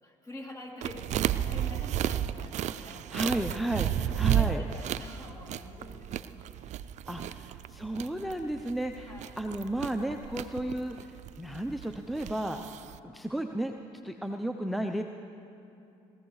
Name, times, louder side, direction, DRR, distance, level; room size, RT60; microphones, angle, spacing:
voice 1, 0.0-3.4 4.3-6.5 7.2-7.4 9.0-9.4, left 1 dB, 25° left, -1 dB, 2.9 m, -46 dB
sound 1, 0.8-13.0, right 11 dB, 60° right, 0.4 m, -33 dB
voice 2, 2.8-4.6 7.1-11.1 11.4-12.6 13.0-13.7 14.0-15.0, right 1 dB, ahead, 5 dB, 0.6 m, -33 dB
21.0 x 15.0 x 3.2 m, 2.7 s
supercardioid pair, 70°, 14 cm